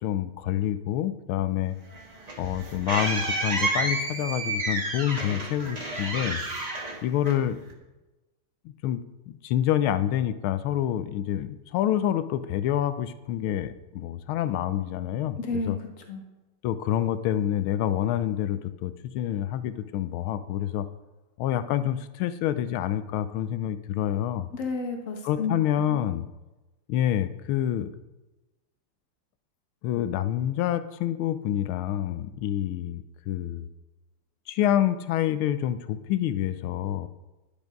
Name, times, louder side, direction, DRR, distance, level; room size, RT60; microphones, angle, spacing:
voice 1, 0.0-1.7 2.4-6.4 7.0-7.6 8.6-15.8 16.6-20.9 21.4-24.5 25.2-26.3 26.9-27.9 29.8-33.7 34.5-37.1, left 11 dB, 80° left, 12 dB, 1.4 m, -27 dB
sound 1, 1.9-7.7, right 2 dB, 25° right, 1.0 m, -30 dB
voice 2, 15.4-15.7 16.1-16.2 24.5-26.0, left 3 dB, 45° left, 3 dB, 1.4 m, -31 dB
10.0 x 6.9 x 5.2 m, 1.1 s
omnidirectional pair, 2.4 m